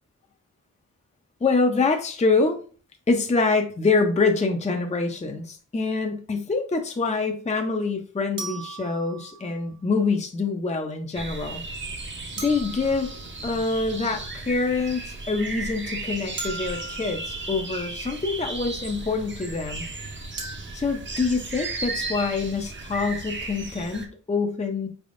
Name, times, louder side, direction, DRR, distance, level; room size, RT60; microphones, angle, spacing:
voice 1, 1.4-2.6 3.1-11.6 12.4-13.1 13.4-19.8 20.7-24.9, left 4 dB, 20° left, 4 dB, 0.5 m, -25 dB
sound 1, 4.9-5.1 8.4-9.7 12.4-13.7 16.4-17.6 20.4-20.6, right 3 dB, 85° right, 1.1 m, -38 dB
sound 2, 11.1-24.1, right 3 dB, 35° right, 0.7 m, -35 dB
4.5 x 3.5 x 2.5 m, 0.41 s
wide cardioid pair, 75°, 33 cm